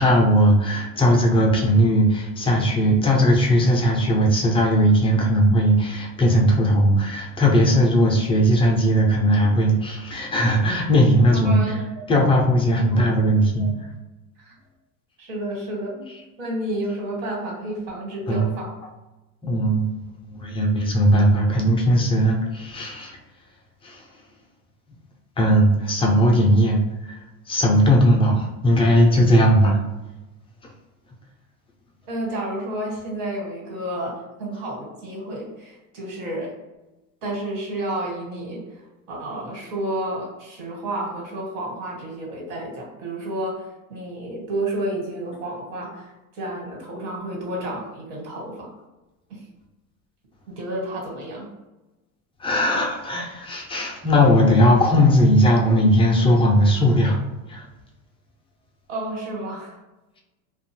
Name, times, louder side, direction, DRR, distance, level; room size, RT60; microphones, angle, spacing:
voice 1, 0.0-11.6 12.1-13.7 18.3-18.5 19.4-23.2 23.8-24.0 25.4-26.8 27.1-27.2 27.5-29.8 52.4-57.2 57.5-57.7, equal, 15° left, 0 dB, 0.3 m, -18 dB
voice 2, 11.3-12.0 12.9-13.0 13.6-13.7 14.4-14.5 15.2-16.0 16.4-18.8 32.0-36.5 37.2-48.7 49.3-49.4 50.5-51.5 58.9-59.8, right 1 dB, 75° right, -1 dB, 1.2 m, -31 dB
2.6 x 2.2 x 2.9 m, 1.1 s
supercardioid pair, 110°, 42 cm